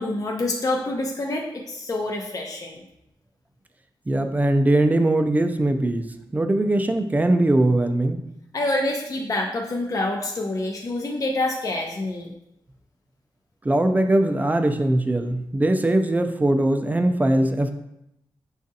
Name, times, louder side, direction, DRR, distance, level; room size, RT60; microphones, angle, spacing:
voice 1, 0.0-2.8 8.5-12.3, left 2 dB, 40° left, 0 dB, 0.5 m, -27 dB
voice 2, 4.1-6.1 6.3-8.2 13.6-17.7, right 1 dB, 20° right, 6 dB, 0.4 m, -21 dB
6.1 x 2.4 x 2.7 m, 0.83 s
cardioid pair, 75°, 9 cm